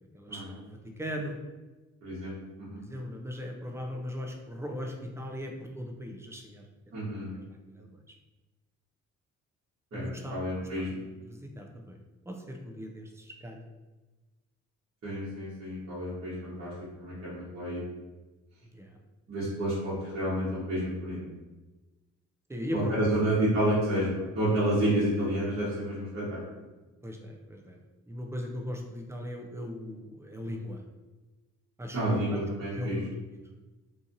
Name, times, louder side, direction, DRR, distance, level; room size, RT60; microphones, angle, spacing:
voice 1, 0.1-1.4 2.8-6.6 7.7-7.9 9.9-10.4 10.9-12.0 12.3-13.6 18.7-18.9 22.5-23.4 24.4-24.7 27.0-27.8 28.1-30.8 31.8-32.4 32.8-33.1, equal, 10° right, 2 dB, 0.4 m, -38 dB
voice 2, 2.0-2.3 2.7-2.8 6.9-7.3 9.9-10.9 15.0-16.7 17.0-17.8 19.3-21.2 22.7-26.4 31.9-33.0, right 1 dB, 45° right, -10 dB, 1.1 m, -29 dB
2.8 x 2.5 x 2.6 m, 1.2 s
cardioid pair, 90°, 30 cm